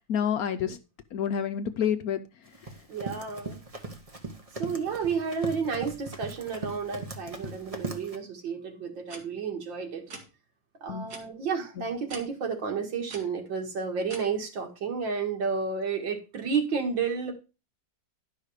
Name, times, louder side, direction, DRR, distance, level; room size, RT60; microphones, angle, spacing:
voice 1, 0.1-0.8 1.1-2.2 10.9-11.1 11.8-11.9, left 8 dB, 65° left, 9 dB, 0.9 m, -28 dB
Run, 2.5-8.2, right 3 dB, 25° right, 0.9 m, -39 dB
voice 2, 2.9-3.6 4.5-10.0 10.8-17.3, right 5 dB, 85° right, 3 dB, 2.5 m, -31 dB
sound 1, 9.1-9.2 10.1-10.3 11.1-11.2 12.1-12.2 13.1-13.2 14.1-14.2, right 3 dB, 55° right, 2.2 m, -41 dB
11.5 x 5.6 x 4.9 m, 0.30 s
omnidirectional pair, 2.0 m